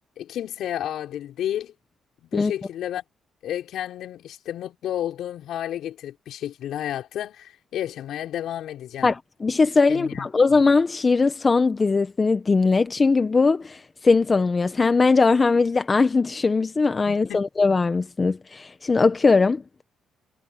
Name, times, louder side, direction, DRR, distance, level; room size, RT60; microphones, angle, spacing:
voice 1, 0.2-1.7 2.2-3.0 3.4-9.1 9.9-10.3 17.1-17.5, left 11 dB, 75° left, 5.9 m, -31 dB
voice 2, 9.0-19.6, left 4 dB, 30° left, 1.1 m, -20 dB
cardioid pair, 90°, 0 cm